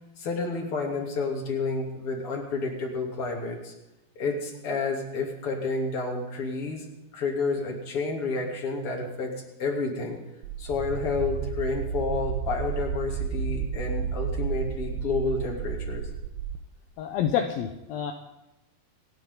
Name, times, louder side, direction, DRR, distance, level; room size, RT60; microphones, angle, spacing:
voice 1, 0.2-3.7 4.2-6.9 7.1-9.3 9.6-10.2 10.6-16.1, left 3 dB, 40° left, 0 dB, 3.6 m, -30 dB
sound 1, 10.4-16.6, right 7 dB, 80° right, 2.7 m, -32 dB
voice 2, 17.0-18.1, left 9 dB, 75° left, 5 dB, 2.7 m, -28 dB
28.5 x 10.5 x 3.9 m, 0.97 s
omnidirectional pair, 4.4 m